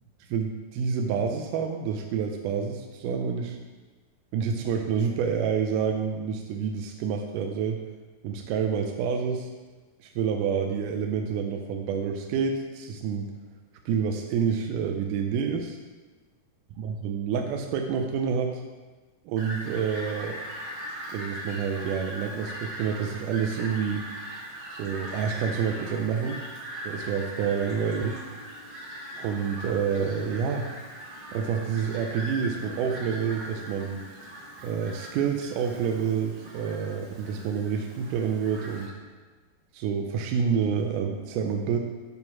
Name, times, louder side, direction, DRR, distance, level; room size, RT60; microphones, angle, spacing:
voice 1, 0.3-3.6 4.3-7.8 8.2-9.5 10.0-13.3 13.9-15.8 16.8-18.6 19.3-20.4 21.1-24.1 24.7-26.4 26.8-28.2 29.2-30.7 31.3-34.0 34.6-38.9 39.7-41.8, right 6 dB, 80° right, 3 dB, 1.9 m, -28 dB
Fowl, 19.4-38.9, equal, 60° right, 3.5 m, -40 dB
9.5 x 3.6 x 5.9 m, 1.3 s
omnidirectional pair, 4.2 m